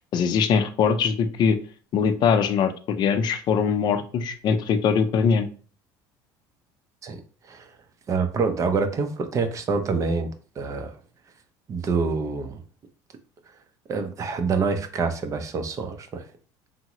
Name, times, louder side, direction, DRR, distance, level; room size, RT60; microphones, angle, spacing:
voice 1, 0.1-1.6 1.9-5.5, left 6 dB, 50° left, 9 dB, 0.5 m, -22 dB
voice 2, 8.1-11.0 11.7-12.6 13.9-16.3, right 4 dB, 35° right, 7 dB, 0.5 m, -26 dB
3.5 x 2.0 x 3.0 m, 0.40 s
supercardioid pair, 110°, 10 cm